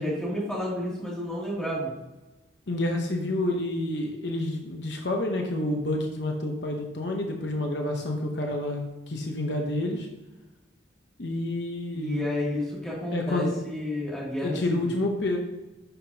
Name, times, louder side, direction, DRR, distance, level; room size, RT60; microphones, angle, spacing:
voice 1, 0.0-2.0 11.9-14.8, left 1 dB, 5° left, -6 dB, 2.6 m, -31 dB
voice 2, 2.7-10.1 11.2-12.3 13.1-13.5 14.4-15.4, left 1 dB, 60° left, 2 dB, 0.9 m, -29 dB
11.0 x 5.9 x 2.8 m, 1.1 s
head